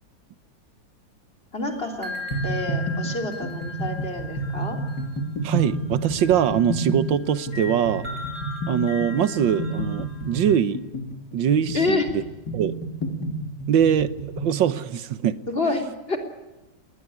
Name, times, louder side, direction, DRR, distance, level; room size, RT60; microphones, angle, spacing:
voice 1, 1.5-2.2 2.4-4.8 11.7-12.1 15.5-16.2, left 3 dB, 30° left, 5 dB, 3.7 m, -28 dB
sound 1, 1.7-10.6, left 3 dB, 30° right, 6.3 m, -39 dB
phased agua, 2.3-14.6, right 1 dB, 65° left, 3.9 m, -30 dB
voice 2, 5.4-8.1 8.7-10.8 11.3-12.2 12.5-12.8 13.7-15.4, right 9 dB, 90° right, 15 dB, 1.8 m, -22 dB
20.5 x 20.0 x 9.6 m, 1.1 s
omnidirectional pair, 2.0 m